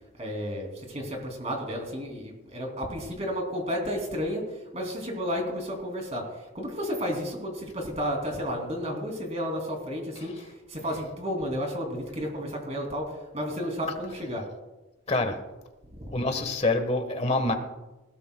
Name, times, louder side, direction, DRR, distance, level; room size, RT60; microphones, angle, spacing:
voice 1, 0.2-14.5 15.9-16.2, equal, 30° right, 2 dB, 2.9 m, -32 dB
voice 2, 15.1-15.4 16.1-17.6, left 2 dB, 30° left, 6 dB, 1.3 m, -26 dB
19.5 x 16.5 x 2.3 m, 1.1 s
head